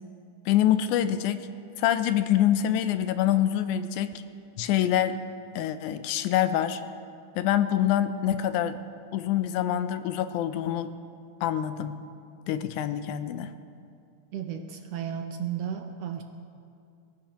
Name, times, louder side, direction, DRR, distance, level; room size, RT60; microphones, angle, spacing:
voice 1, 0.5-1.5 1.8-4.1 4.6-5.2 5.6-6.8 7.4-8.8 9.1-10.9 11.4-12.0 12.5-13.5, left 11 dB, 85° left, 11 dB, 2.1 m, -25 dB
voice 2, 14.3-16.2, right 8 dB, 70° right, 5 dB, 1.6 m, -34 dB
23.0 x 15.5 x 3.0 m, 2.4 s
omnidirectional pair, 3.4 m